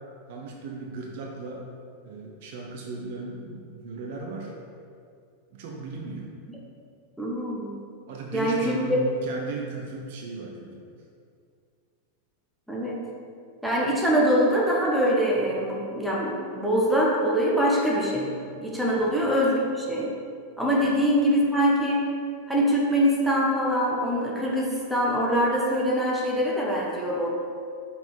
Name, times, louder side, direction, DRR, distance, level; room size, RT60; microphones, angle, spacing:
voice 1, 0.3-1.6 2.0-4.5 5.5-6.3 8.1-10.9 18.9-19.1 20.7-20.9, right 3 dB, 50° right, 0 dB, 0.9 m, -36 dB
voice 2, 7.2-7.7 8.3-9.0 12.7-13.0 13.6-20.1 20.6-22.1 22.5-27.3, equal, ahead, -4 dB, 1.4 m, -24 dB
5.8 x 4.9 x 5.2 m, 2.3 s
figure-of-eight pair, 90°, 0 cm